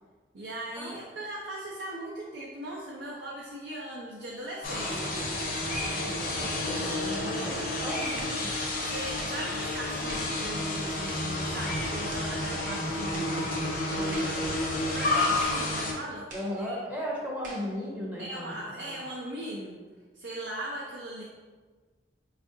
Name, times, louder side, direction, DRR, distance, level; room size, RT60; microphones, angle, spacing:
voice 1, 0.3-5.1 8.8-14.5 14.9-16.3 16.6-16.8 18.2-19.8 20.1-21.2, right 1 dB, 85° right, -4 dB, 0.5 m, -39 dB
sound 1, 4.6-15.9, left 2 dB, 50° left, 0.6 m, -30 dB
sound 2, 4.9-5.1 5.9-6.2 7.1-7.3 8.2-8.4 9.2-9.4 10.1-10.4 11.1-11.3 12.1-12.3 13.1-13.4 14.1-14.4 15.4-15.7 16.3-16.6 17.4-17.7, right 1 dB, 50° right, 0.7 m, -44 dB
voice 2, 6.1-8.5 16.3-18.6 18.8-19.1, equal, 10° right, -4 dB, 0.5 m, -36 dB
4.3 x 2.4 x 2.6 m, 1.4 s
head